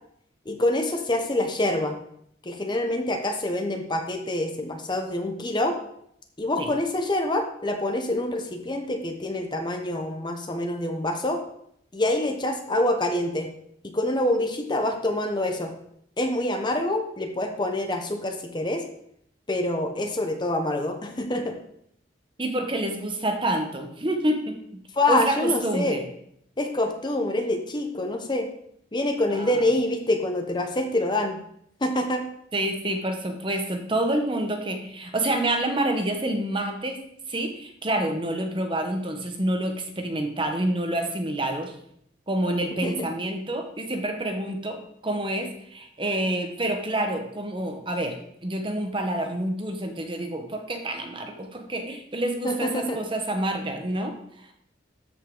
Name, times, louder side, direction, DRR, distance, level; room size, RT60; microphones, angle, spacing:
voice 1, 0.5-1.9 2.4-5.8 6.4-11.4 11.9-13.5 13.9-15.7 16.2-18.8 19.5-21.6 25.0-26.0 26.6-28.5 28.9-31.4 31.8-32.2 42.8-43.1 52.4-53.0, left 1 dB, 25° left, 4 dB, 0.8 m, -26 dB
voice 2, 22.4-24.6 25.1-26.0 29.4-29.6 32.5-37.0 37.3-41.7 42.3-54.1, right 1 dB, 25° right, 4 dB, 1.1 m, -28 dB
13.0 x 5.5 x 3.8 m, 0.71 s
head